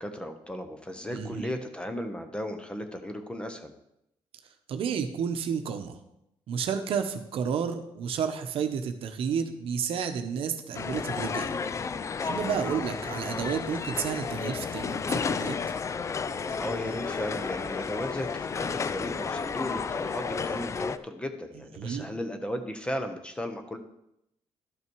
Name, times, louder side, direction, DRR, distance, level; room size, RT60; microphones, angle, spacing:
voice 1, 0.0-3.7 12.4-12.6 16.6-23.8, equal, 10° left, 7 dB, 1.0 m, -35 dB
voice 2, 1.1-1.4 4.7-6.0 6.5-11.5 12.2-15.6 21.6-22.1, right 7 dB, 70° right, 7 dB, 0.9 m, -31 dB
sound 1, 10.7-21.0, left 5 dB, 30° left, 0.4 m, -32 dB
12.0 x 5.8 x 4.7 m, 0.80 s
cardioid pair, 125°, 10 cm